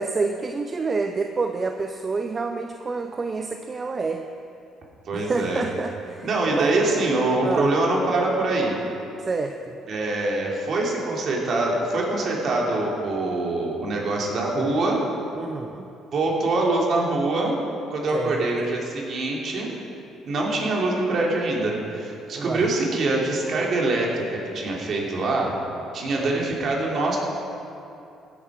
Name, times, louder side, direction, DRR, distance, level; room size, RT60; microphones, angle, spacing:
voice 1, 0.0-4.2 5.1-6.8 7.4-7.7 9.2-9.7 15.4-15.9 18.1-18.5 22.3-22.7 26.2-26.4, right 4 dB, 35° right, 6 dB, 0.6 m, -28 dB
voice 2, 5.1-5.6 6.2-8.8 9.9-15.0 16.1-17.5 17.9-19.7 20.3-25.6 25.9-27.2, right 2 dB, 55° right, -2 dB, 2.9 m, -24 dB
16.0 x 8.7 x 4.9 m, 2.7 s
hypercardioid pair, 60°, 0 cm